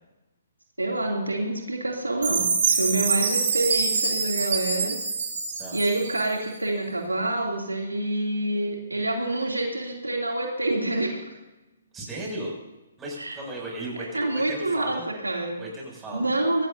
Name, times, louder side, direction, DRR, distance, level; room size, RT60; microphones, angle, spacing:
voice 1, 0.8-5.0 5.7-11.3 13.2-13.3 14.1-15.0 15.2-15.6 16.1-16.7, right 2 dB, 85° right, 0 dB, 2.9 m, -27 dB
Chime, 2.2-6.5, right 5 dB, 50° right, 6.0 m, -25 dB
voice 2, 11.9-12.5 13.0-15.1 15.6-16.4, right 1 dB, 15° right, -3 dB, 6.9 m, -36 dB
24.5 x 18.0 x 2.8 m, 1.0 s
figure-of-eight pair, 130°, 0 cm